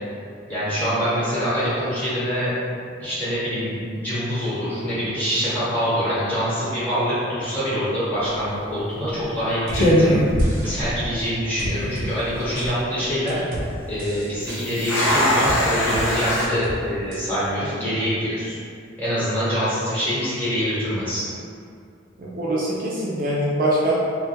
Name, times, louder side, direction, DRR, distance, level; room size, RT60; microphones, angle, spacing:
voice 1, 0.5-2.6 3.0-10.2 10.6-18.6 19.0-21.2, equal, 10° left, -12 dB, 0.9 m, -25 dB
sound 1, 8.2-8.5 9.2-9.4 9.7-11.3 11.6-11.7 12.3-12.7 14.4-16.4, equal, 80° left, 0.6 m, -21 dB
sound 2, 9.7-9.8 10.4-10.8 11.6-12.1 12.6-12.7 13.3-13.7 14.0-14.6 15.4-15.6 15.9-16.1 16.4-16.8 17.1-17.2, right 1 dB, 80° right, 0.6 m, -32 dB
voice 2, 22.2-23.9, right 1 dB, 45° right, -6 dB, 0.3 m, -23 dB
2.2 x 2.1 x 2.7 m, 2.3 s
head